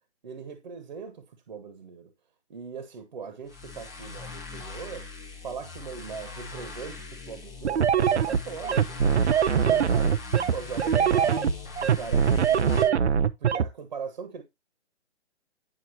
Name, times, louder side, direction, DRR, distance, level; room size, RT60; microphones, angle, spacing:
voice 1, 0.2-2.1 2.5-5.1 5.4-9.2 9.7-10.2 10.5-11.6 11.8-13.1 13.4-14.4, right 6 dB, 45° right, 1.5 m, -39 dB
sound 1, 3.5-12.8, left 4 dB, 5° left, 0.6 m, -40 dB
sound 2, 7.7-13.7, right 7 dB, 75° right, 0.8 m, -22 dB
10.0 x 5.9 x 2.9 m
hypercardioid pair, 170°, 34 cm